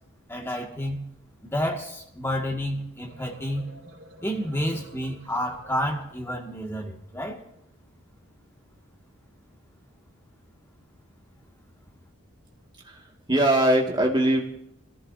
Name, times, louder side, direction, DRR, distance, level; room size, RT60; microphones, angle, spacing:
voice 1, 0.3-1.1 1.4-3.7 4.2-7.4, equal, 10° left, 0 dB, 2.0 m, -30 dB
sound 1, 2.8-6.7, right 1 dB, 80° right, 3.5 m, -50 dB
voice 2, 12.8-14.4, right 1 dB, 20° right, 0 dB, 2.1 m, -22 dB
24.5 x 14.5 x 2.8 m, 0.77 s
head